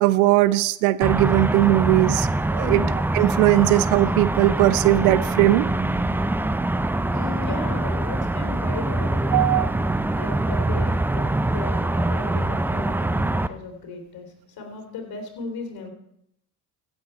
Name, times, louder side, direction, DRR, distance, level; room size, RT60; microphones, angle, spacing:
voice 1, 0.0-2.8 3.1-5.6 9.3-10.0, right 16 dB, 70° right, 18 dB, 0.6 m, -19 dB
sound 1, 1.0-13.5, right 2 dB, 5° right, 0.4 m, -24 dB
voice 2, 7.1-9.4 10.1-15.9, left 4 dB, 55° left, 3 dB, 3.3 m, -36 dB
15.5 x 7.5 x 4.5 m, 0.76 s
hypercardioid pair, 55°, 44 cm